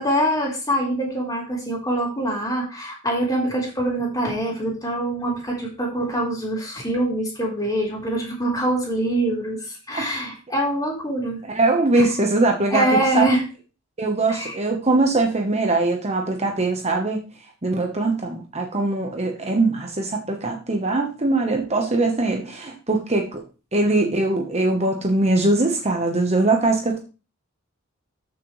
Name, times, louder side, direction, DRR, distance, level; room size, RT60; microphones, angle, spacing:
voice 1, 0.0-11.4 12.0-12.1 12.7-13.4 14.3-14.6, right 1 dB, 20° left, -2 dB, 4.1 m, -24 dB
voice 2, 11.5-12.9 13.1-13.3 14.0-17.2 17.6-23.4 23.7-27.0, right 2 dB, 30° right, 3 dB, 1.3 m, -21 dB
13.5 x 6.3 x 3.3 m, 0.32 s
head